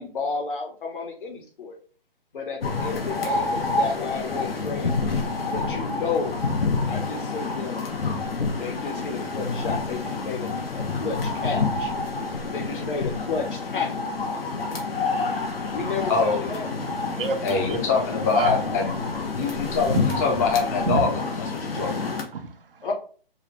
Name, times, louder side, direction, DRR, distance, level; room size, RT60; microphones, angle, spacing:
voice 1, 0.0-1.8 2.3-5.1 5.4-6.3 6.9-7.8 8.6-10.5 10.7-11.9 12.5-14.1 15.7-16.7 22.8-22.9, left 4 dB, 60° left, 2 dB, 1.2 m, -32 dB
sound 1, 2.6-22.2, left 3 dB, 80° left, 1.0 m, -28 dB
voice 2, 16.1-16.4 17.4-18.9 19.4-22.1, left 5 dB, 20° left, 2 dB, 0.6 m, -24 dB
voice 3, 16.8-17.6 18.3-18.6 19.3-19.4 19.9-20.1 20.9-21.1 21.6-21.8 22.3-22.9, right 4 dB, 70° right, 6 dB, 0.8 m, -28 dB
4.8 x 2.2 x 3.1 m, 0.40 s
hypercardioid pair, 145°, 29 cm